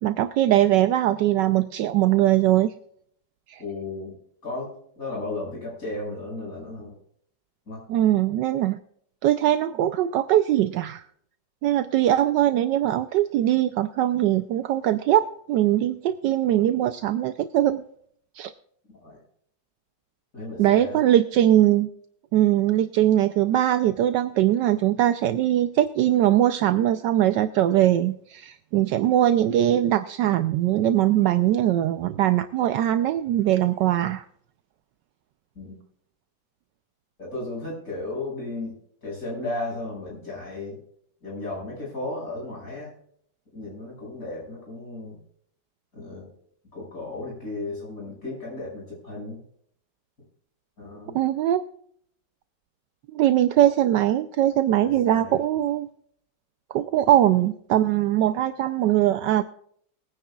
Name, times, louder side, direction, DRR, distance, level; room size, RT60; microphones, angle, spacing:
voice 1, 0.0-2.7 3.5-3.6 7.9-8.8 9.2-11.0 11.6-17.8 18.3-18.5 20.6-21.9 22.3-34.2 51.1-51.6 53.1-55.9 56.7-59.4, right 12 dB, 75° right, 10 dB, 1.2 m, -21 dB
voice 2, 3.6-4.2 4.4-7.0 7.7-7.8 19.0-19.2 20.3-21.0 35.5-35.7 37.2-38.7 39.0-40.8 41.2-42.9 43.5-45.2 45.9-46.3 46.7-49.4 50.8-51.2 54.8-55.4, left 2 dB, 45° left, -3 dB, 6.5 m, -34 dB
22.5 x 10.0 x 2.3 m, 0.65 s
omnidirectional pair, 2.0 m